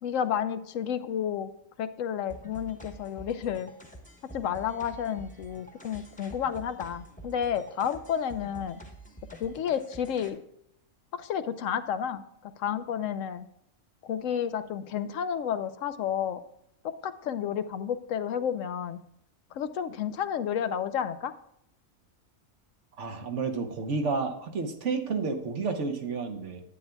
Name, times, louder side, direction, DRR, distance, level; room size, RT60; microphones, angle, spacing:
voice 1, 0.0-1.5 1.8-3.7 4.3-8.8 9.4-10.4 11.1-13.5 14.0-16.4 16.8-19.0 19.5-21.3, left 8 dB, 80° left, 11 dB, 1.0 m, -31 dB
sound 1, 2.3-10.3, right 2 dB, 5° left, 1.0 m, -48 dB
voice 2, 23.0-26.6, right 4 dB, 65° right, 5 dB, 1.3 m, -31 dB
10.5 x 9.0 x 2.3 m, 0.77 s
omnidirectional pair, 1.3 m